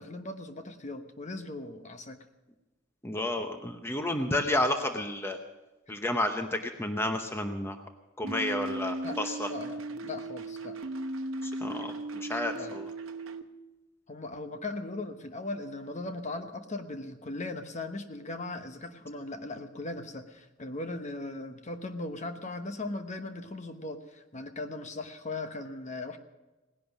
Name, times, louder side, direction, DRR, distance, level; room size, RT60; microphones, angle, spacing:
voice 1, 0.0-2.2 9.0-10.8 12.5-12.8 14.1-26.2, left 2 dB, 35° left, 7 dB, 1.0 m, -38 dB
voice 2, 3.0-5.4 5.9-7.8 8.2-9.5 11.4-12.9, left 1 dB, 10° left, 5 dB, 0.9 m, -31 dB
sound 1, 8.2-13.4, right 2 dB, 75° right, 1.0 m, -37 dB
18.0 x 11.0 x 6.0 m, 1.1 s
head